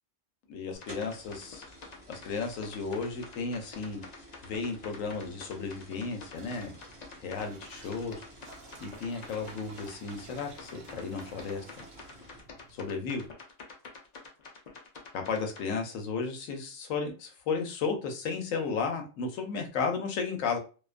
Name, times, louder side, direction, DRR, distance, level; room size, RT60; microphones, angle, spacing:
voice 1, 0.5-1.6 2.1-4.0 4.4-6.7 7.2-8.2 8.8-11.6 12.7-13.2 15.1-20.6, left 5 dB, 80° left, 4 dB, 1.0 m, -34 dB
sound 1, 0.7-15.7, left 4 dB, 55° left, 0.4 m, -48 dB
sound 2, 0.8-12.4, equal, 20° right, 1.0 m, -53 dB
sound 3, 6.3-13.3, right 4 dB, 60° right, 0.6 m, -54 dB
2.4 x 2.2 x 2.4 m, 0.35 s
omnidirectional pair, 1.3 m